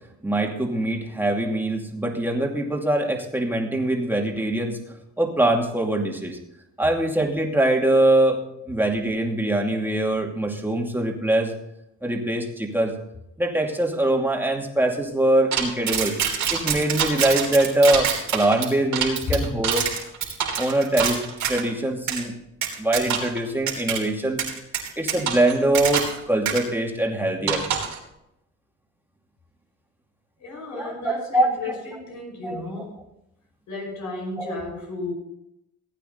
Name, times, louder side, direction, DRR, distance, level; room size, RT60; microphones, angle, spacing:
voice 1, 0.2-4.8 5.2-6.4 6.8-8.4 8.7-11.5 12.0-12.9 13.4-16.2 16.5-19.9 20.6-22.3 22.8-24.4 25.0-27.8 30.7-31.8 32.4-32.8 34.4-34.5, right 1 dB, 5° right, 1 dB, 2.5 m, -23 dB
sound 1, 15.5-21.6 22.1-22.2 22.6-23.4 23.7-24.0 24.4-26.2 26.4-26.6 27.5-28.0, right 8 dB, 70° right, 3.4 m, -26 dB
voice 2, 30.4-33.0 33.7-35.1, left 2 dB, 75° left, 0 dB, 5.5 m, -34 dB
16.5 x 9.1 x 4.0 m, 0.81 s
cardioid pair, 90°, 30 cm